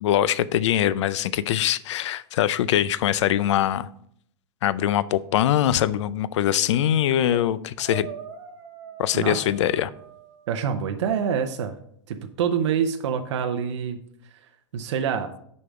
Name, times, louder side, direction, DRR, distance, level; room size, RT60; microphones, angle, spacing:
voice 1, 0.0-3.9 4.6-8.1 9.0-9.9, left 11 dB, 75° left, 0.5 m, -22 dB
sound 1, 7.2-7.5 7.8-10.6, right 9 dB, 55° right, 1.3 m, -41 dB
voice 2, 10.5-11.7 12.1-14.0 14.3-15.3, right 7 dB, 80° right, 0.7 m, -26 dB
6.8 x 5.3 x 4.7 m
supercardioid pair, 165°, 15 cm